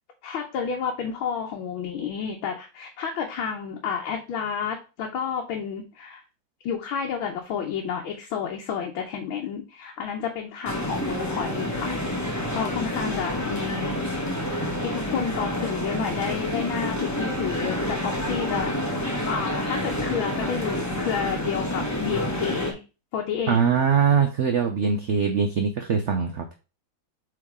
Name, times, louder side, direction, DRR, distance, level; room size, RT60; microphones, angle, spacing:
voice 1, 0.2-6.2 6.6-11.9 12.4-14.3 14.8-18.9 19.3-22.8 23.1-23.6, left 7 dB, 80° left, 1 dB, 1.7 m, -30 dB
sound 1, 10.6-22.7, left 1 dB, 10° left, 0.8 m, -28 dB
voice 2, 23.5-26.4, right 6 dB, 65° right, 4 dB, 0.7 m, -22 dB
7.9 x 3.4 x 3.6 m, 0.30 s
omnidirectional pair, 2.2 m